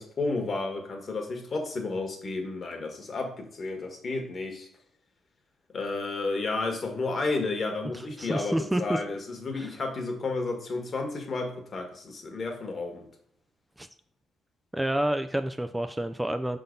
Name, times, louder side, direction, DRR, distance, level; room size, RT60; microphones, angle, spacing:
voice 1, 0.0-4.7 5.7-13.1, left 3 dB, 45° left, 3 dB, 1.5 m, -32 dB
voice 2, 7.9-9.0 9.6-9.7 13.8-13.9 14.7-16.6, right 1 dB, 10° right, 8 dB, 0.4 m, -29 dB
5.6 x 3.8 x 5.2 m, 0.66 s
cardioid pair, 90°, 0 cm